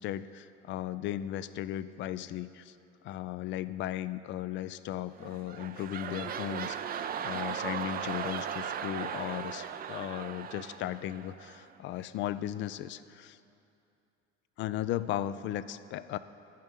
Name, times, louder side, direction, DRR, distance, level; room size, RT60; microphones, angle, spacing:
voice 1, 0.0-2.7 3.0-13.4 14.6-16.2, left 12 dB, 35° left, 15 dB, 0.4 m, -36 dB
sound 1, 5.2-11.7 12.2-12.3, right 8 dB, 25° right, 0.5 m, -37 dB
11.0 x 6.2 x 8.2 m, 2.7 s
figure-of-eight pair, 60°, 36 cm